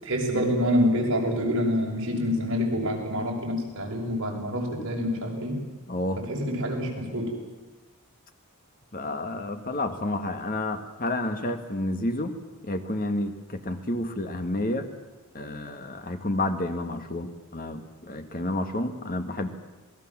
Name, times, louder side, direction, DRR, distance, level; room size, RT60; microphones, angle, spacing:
voice 1, 0.0-5.6 6.3-7.3, equal, 55° right, -1 dB, 6.9 m, -26 dB
voice 2, 5.9-6.2 8.9-12.4 12.6-14.9 15.3-19.5, left 1 dB, 40° left, 7 dB, 1.8 m, -30 dB
27.0 x 20.0 x 7.5 m, 1.1 s
head